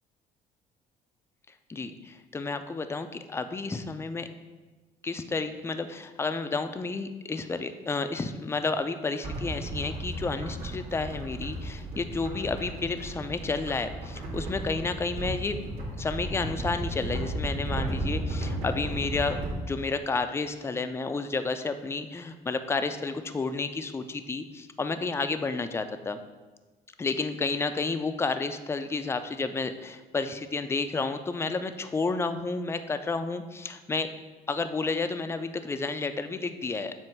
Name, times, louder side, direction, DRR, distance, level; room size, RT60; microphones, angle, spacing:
voice 1, 1.7-4.3 5.0-15.6 16.0-19.4 19.7-26.2 27.0-34.1 34.5-36.9, left 4 dB, 15° left, 9 dB, 0.4 m, -31 dB
sound 1, 9.2-19.5, right 1 dB, 80° right, 2.1 m, -34 dB
7.6 x 2.6 x 5.9 m, 1.2 s
cardioid pair, 110°, 17 cm